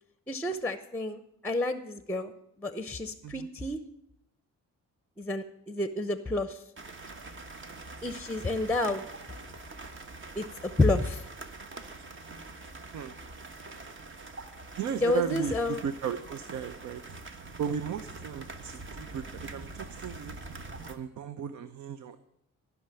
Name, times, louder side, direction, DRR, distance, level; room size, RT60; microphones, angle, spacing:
voice 1, 0.3-2.3 2.6-3.8 5.2-6.6 8.0-9.0 10.3-10.4 10.8-11.2 15.0-15.8, left 2 dB, 5° left, 12 dB, 0.8 m, -29 dB
sound 1, 6.8-21.0, right 3 dB, 40° right, 1.4 m, -44 dB
voice 2, 14.8-17.0 17.6-19.2 19.5-20.3 20.9-22.2, right 7 dB, 70° right, 11 dB, 0.8 m, -35 dB
15.0 x 6.0 x 9.1 m, 0.82 s
cardioid pair, 90°, 30 cm